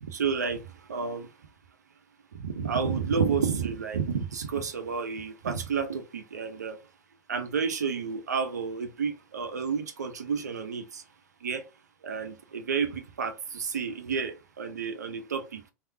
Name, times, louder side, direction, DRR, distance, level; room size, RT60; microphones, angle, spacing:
voice 1, 0.0-1.3 2.3-6.8 7.3-11.0 11.4-11.7 12.0-15.6, right 6 dB, 85° right, 0.7 m, -30 dB
3.4 x 2.7 x 2.7 m
hypercardioid pair, 95°, 9 cm